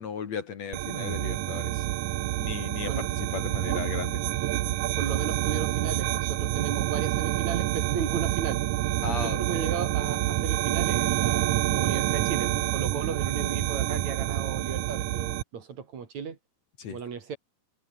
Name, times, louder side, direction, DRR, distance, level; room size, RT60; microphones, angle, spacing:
voice 1, 0.0-1.9 2.4-4.2 9.0-9.8 16.8-17.0, left 6 dB, 50° left, 2.8 m, -36 dB
sound 1, 0.7-15.4, right 15 dB, 70° right, 2.0 m, -27 dB
voice 2, 4.9-8.6 9.2-16.4 16.9-17.4, right 6 dB, 55° right, 3.6 m, -35 dB
omnidirectional pair, 4.3 m